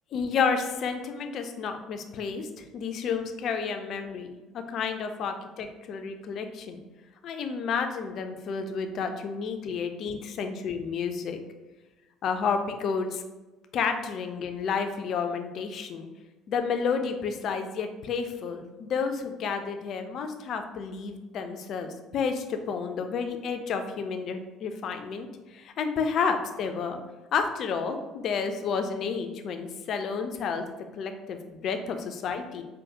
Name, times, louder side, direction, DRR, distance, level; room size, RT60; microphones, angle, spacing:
voice 1, 0.1-6.8 7.2-11.4 12.2-13.2 13.7-16.1 16.5-27.0 27.3-30.6 30.9-32.6, left 5 dB, 50° left, 6 dB, 0.4 m, -31 dB
4.5 x 2.1 x 2.8 m, 1.1 s
figure-of-eight pair, 55°, 0 cm